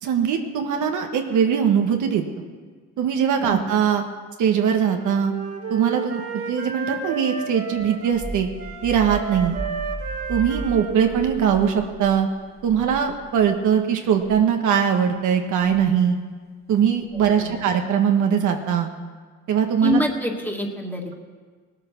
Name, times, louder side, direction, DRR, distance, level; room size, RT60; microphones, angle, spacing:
voice 1, 0.0-2.2 3.0-4.0 4.4-5.3 5.7-6.2 6.5-8.5 8.8-9.5 10.3-12.3 12.6-16.2 16.7-18.9 19.5-20.0, right 8 dB, 80° right, 4 dB, 1.4 m, -21 dB
Wind instrument woodwind instrument, 4.7-8.2 8.6-12.4, right 5 dB, 50° right, 2.1 m, -33 dB
sound 1, 7.8-13.7 14.1-14.4 15.6-15.9 17.1-17.5, right 2 dB, 35° right, 1.7 m, -36 dB
voice 2, 17.3-17.6 19.8-21.1, left 2 dB, 5° left, 1 dB, 2.0 m, -26 dB
18.0 x 8.8 x 6.0 m, 1.5 s
cardioid pair, 90°, 30 cm